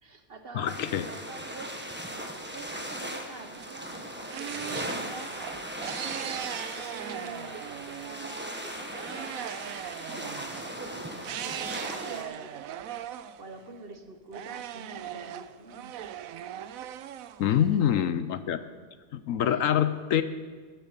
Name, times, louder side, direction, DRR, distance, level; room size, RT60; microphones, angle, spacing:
voice 1, 0.0-2.1 2.5-5.4 6.0-9.6 10.1-11.1 11.4-13.0 13.4-15.9 17.5-17.8 18.2-18.3 18.6-18.7 19.4-19.6, right 3 dB, 45° right, 6 dB, 1.1 m, -46 dB
voice 2, 0.5-1.1 17.4-18.6 19.1-20.2, left 10 dB, 70° left, 12 dB, 1.0 m, -25 dB
sound 1, 0.7-12.2, equal, 10° right, 1.2 m, -38 dB
sound 2, 3.5-8.4 8.9-10.7 11.2-13.9 14.3-18.0, right 11 dB, 75° right, 1.0 m, -39 dB
12.5 x 10.5 x 7.3 m, 1.5 s
omnidirectional pair, 1.6 m